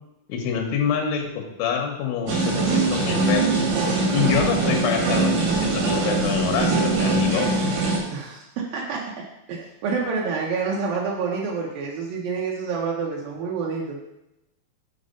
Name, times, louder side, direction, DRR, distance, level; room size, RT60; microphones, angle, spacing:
voice 1, 0.3-3.5 4.1-7.5, left 7 dB, 90° left, 3 dB, 3.4 m, -26 dB
sound 1, 2.3-8.0, right 3 dB, 75° right, 3.6 m, -22 dB
voice 2, 8.1-14.0, right 5 dB, 90° right, -2 dB, 1.9 m, -28 dB
7.7 x 4.2 x 5.2 m, 0.89 s
omnidirectional pair, 5.3 m